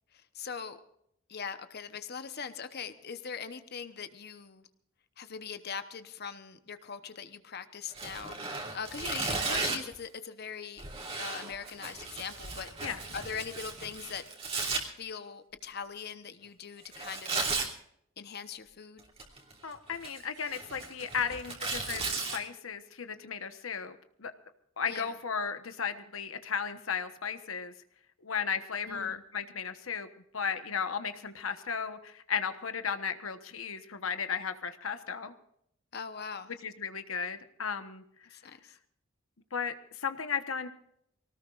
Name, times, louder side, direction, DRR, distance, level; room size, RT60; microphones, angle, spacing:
voice 1, 0.1-0.8 1.3-4.7 5.2-8.4 8.7-10.8 11.2-14.2 15.0-17.5 18.2-19.0 21.2-21.3 24.9-25.2 28.8-29.2 35.9-36.5 38.3-38.8, left 6 dB, 50° left, 10 dB, 1.0 m, -41 dB
Tearing, 7.9-9.9 10.8-14.8 16.9-17.7 19.0-19.5 19.9-22.4, right 3 dB, 30° right, 2.9 m, -35 dB
voice 2, 19.6-24.3 24.8-27.7 28.2-30.1 30.3-35.3 36.6-38.0 39.5-40.7, left 6 dB, 90° left, 9 dB, 1.2 m, -35 dB
24.5 x 18.5 x 2.5 m, 0.72 s
head